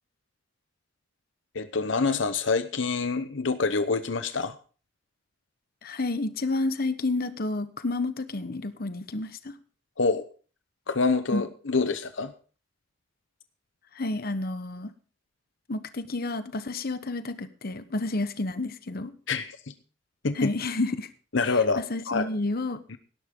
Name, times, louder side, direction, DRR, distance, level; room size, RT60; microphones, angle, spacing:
voice 1, 1.5-4.5 10.0-10.2 10.9-12.3 19.3-19.7 20.2-20.5 21.3-22.3 22.9-23.0, left 4 dB, 75° left, 11 dB, 0.9 m, -26 dB
voice 2, 5.8-9.5 11.3-11.4 13.9-14.9 15.7-19.1 20.4-21.1 21.9-22.8, left 2 dB, 55° left, 11 dB, 1.1 m, -30 dB
17.5 x 12.0 x 3.8 m, 0.39 s
head